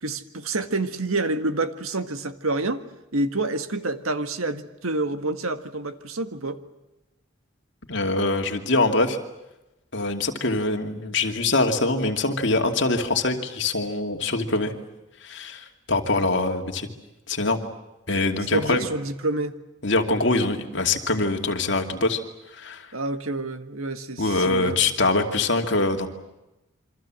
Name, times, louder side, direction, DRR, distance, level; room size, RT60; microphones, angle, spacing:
voice 1, 0.0-2.8 3.1-6.6 18.5-19.6 22.9-24.9, right 2 dB, 90° right, 9 dB, 1.7 m, -28 dB
voice 2, 7.9-9.2 9.9-14.7 15.2-16.9 17.3-17.6 18.1-18.9 19.8-22.2 22.6-22.9 24.2-26.1, left 2 dB, 55° left, 4 dB, 2.6 m, -23 dB
27.5 x 25.0 x 7.7 m, 0.98 s
head